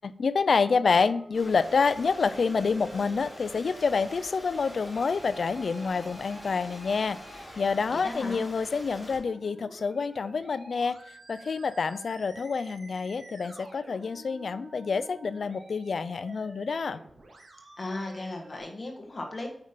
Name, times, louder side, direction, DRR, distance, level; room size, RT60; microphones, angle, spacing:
voice 1, 0.0-17.0, left 5 dB, 70° left, 14 dB, 0.4 m, -28 dB
Musical instrument, 0.6-18.6, right 1 dB, 65° right, 2.2 m, -50 dB
Stream, 1.3-9.2, equal, 10° left, 3.9 m, -46 dB
voice 2, 7.9-8.4 17.8-19.5, left 2 dB, 40° left, 1 dB, 1.6 m, -36 dB
8.9 x 5.4 x 5.2 m, 0.70 s
wide cardioid pair, 135°, 0 cm